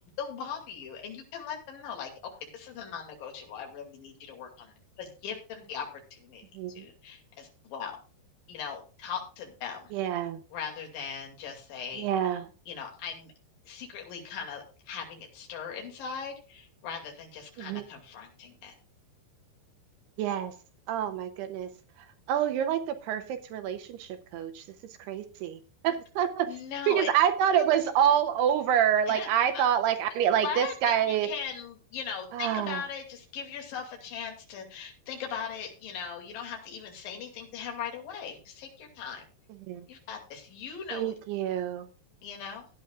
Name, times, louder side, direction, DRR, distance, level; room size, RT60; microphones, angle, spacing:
voice 1, 0.0-2.1 2.4-7.9 8.5-9.9 10.5-12.1 12.7-13.3 13.7-18.8 26.5-27.1 27.5-27.7 29.1-29.3 29.5-29.6 30.4-39.2 39.9-41.1 42.2-42.6, left 7 dB, 55° left, 2 dB, 3.7 m, -39 dB
voice 2, 6.5-6.9 9.9-10.4 12.0-12.5 17.6-17.8 20.2-20.5 20.9-21.7 22.3-24.7 25.0-26.5 26.9-31.3 32.3-32.8 39.7-39.9 40.9-41.9, right 9 dB, 75° right, 8 dB, 2.6 m, -27 dB
17.0 x 9.9 x 2.4 m, 0.35 s
omnidirectional pair, 5.3 m